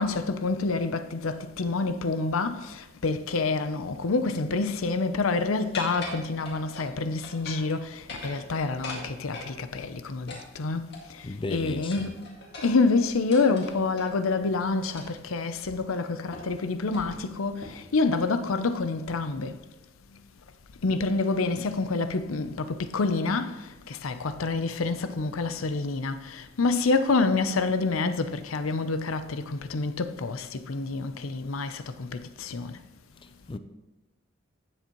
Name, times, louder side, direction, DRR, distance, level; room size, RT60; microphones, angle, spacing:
voice 1, 0.0-10.9 11.2-12.1 12.6-19.6 20.8-32.7, left 3 dB, 90° left, 0.6 m, -27 dB
sound 1, 5.7-6.9 7.2-7.7 8.0-9.5 10.3-11.3 11.9-14.1 14.9-15.2 15.6-15.7 16.3-16.6 16.9-17.1 17.6-17.9, left 2 dB, 55° left, 2.0 m, -41 dB
voice 2, 11.2-12.0 33.5-33.6, left 2 dB, 25° left, 0.4 m, -34 dB
15.0 x 7.1 x 3.0 m
head